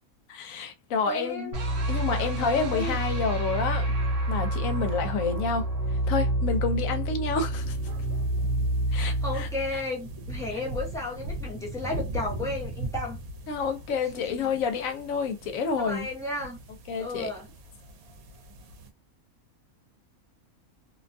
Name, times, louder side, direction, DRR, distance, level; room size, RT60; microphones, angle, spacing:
voice 1, 0.3-1.5 1.9-3.9 4.3-5.6 6.1-7.8 8.9-9.5 10.5-10.6 13.5-16.1 16.9-17.3, left 5 dB, 70° left, 1.0 m, -29 dB
voice 2, 1.0-1.8 2.1-3.0 8.9-13.2 14.1-14.5 15.8-16.6 17.0-17.5, left 2 dB, 5° left, 0.5 m, -34 dB
sound 1, 1.5-10.6, right 1 dB, 50° right, 0.7 m, -28 dB
sound 2, 7.6-18.9, right 1 dB, 80° right, 1.1 m, -40 dB
2.7 x 2.2 x 2.5 m
omnidirectional pair, 1.5 m